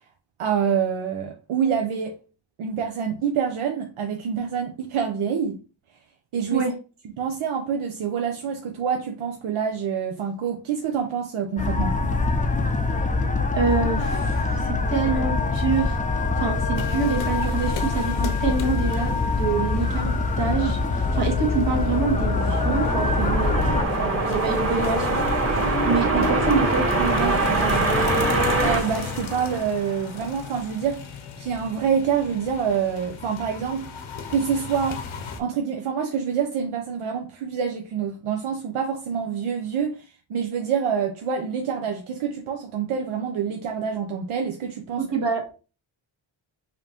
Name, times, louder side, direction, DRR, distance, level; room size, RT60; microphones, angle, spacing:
voice 1, 0.4-2.1 2.6-5.6 6.3-6.6 7.2-12.0 28.2-28.3 28.6-33.9 34.3-35.0 35.4-45.1, right 7 dB, 85° right, 0.7 m, -26 dB
sound 1, 11.6-23.8, left 3 dB, 15° left, 0.4 m, -24 dB
voice 2, 13.5-16.0 16.4-27.8 45.0-45.4, right 4 dB, 60° right, 1.5 m, -26 dB
sound 2, 16.7-35.4, left 6 dB, 70° left, 0.8 m, -37 dB
sound 3, 21.6-29.9, right 2 dB, 30° right, 1.4 m, -24 dB
5.0 x 2.7 x 2.8 m
cardioid pair, 85°, 48 cm